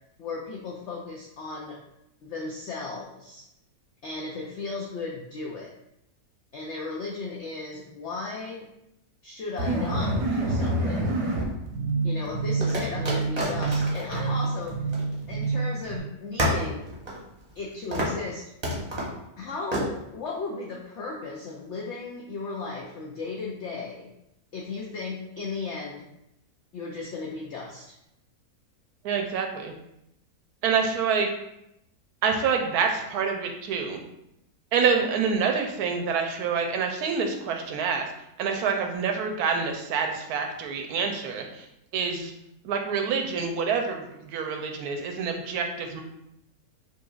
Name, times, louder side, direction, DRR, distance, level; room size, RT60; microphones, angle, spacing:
voice 1, 0.2-1.8 2.2-3.4 4.0-5.7 6.5-8.7 9.2-11.2 12.0-14.9 15.3-16.9 17.6-18.5 19.4-24.1 24.5-26.1 26.7-28.0, left 3 dB, 70° left, -2 dB, 0.7 m, -36 dB
sound 1, 9.6-16.0, right 2 dB, 55° right, 0.9 m, -27 dB
sound 2, 10.5-11.4 12.6-15.6 15.8-15.9 16.4-17.6 17.9-18.2 18.6-19.2 19.7-19.9, equal, 30° right, 0.9 m, -30 dB
voice 2, 29.0-29.7 30.6-31.3 32.2-34.0 34.7-38.1 38.4-41.7 41.9-42.3 42.6-46.0, right 6 dB, 80° right, 4 dB, 1.1 m, -27 dB
5.4 x 2.8 x 2.3 m, 0.82 s
omnidirectional pair, 1.7 m